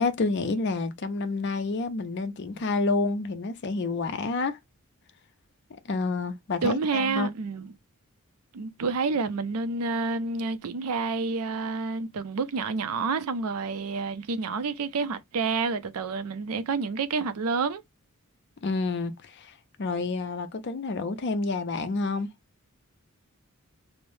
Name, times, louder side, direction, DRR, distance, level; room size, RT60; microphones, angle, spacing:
voice 1, 0.0-4.6 5.9-7.3 18.6-22.3, left 3 dB, 50° left, 0.5 m, -29 dB
voice 2, 6.6-7.7 8.5-17.8, right 4 dB, 90° right, 0.5 m, -29 dB
3.1 x 2.0 x 2.6 m
head